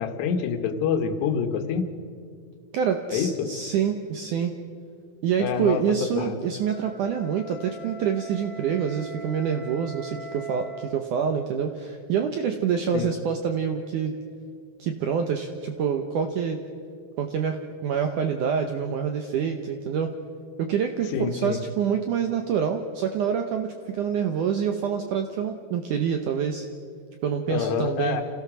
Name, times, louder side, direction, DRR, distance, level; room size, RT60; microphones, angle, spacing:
voice 1, 0.0-1.9 3.1-3.5 5.4-5.8 6.2-6.4 12.9-13.1 21.1-21.6 27.5-28.2, left 7 dB, 80° left, 7 dB, 3.4 m, -26 dB
voice 2, 2.7-4.5 5.2-14.2 14.8-16.6 17.2-20.1 20.6-26.7 27.2-28.2, right 7 dB, 75° right, 6 dB, 1.9 m, -26 dB
Wind instrument woodwind instrument, 6.3-11.0, right 3 dB, 10° left, 0.9 m, -42 dB
28.0 x 16.5 x 6.2 m, 2.3 s
omnidirectional pair, 4.9 m